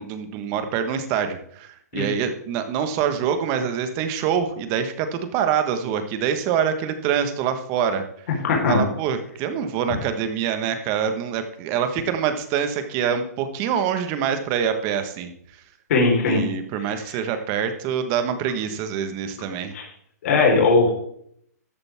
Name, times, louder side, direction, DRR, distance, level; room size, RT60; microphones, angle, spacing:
voice 1, 0.0-8.1 8.6-15.3 16.2-19.7, right 8 dB, 30° right, 8 dB, 1.4 m, -25 dB
voice 2, 8.4-8.9 15.9-16.4 19.7-19.8 20.2-20.9, left 3 dB, 55° left, -1 dB, 4.2 m, -18 dB
13.0 x 8.9 x 3.6 m, 0.67 s
hypercardioid pair, 150°, 9 cm